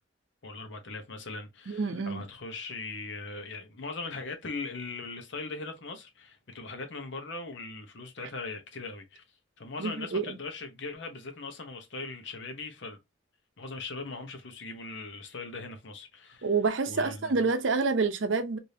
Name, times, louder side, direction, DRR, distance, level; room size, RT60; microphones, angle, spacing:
voice 1, 0.4-9.2 9.6-13.0 13.6-16.5 16.9-17.5, left 3 dB, 65° left, 0.8 m, -40 dB
voice 2, 1.7-2.2 9.8-10.4 16.4-18.6, right 4 dB, 70° right, 0.6 m, -28 dB
3.4 x 2.6 x 2.7 m
head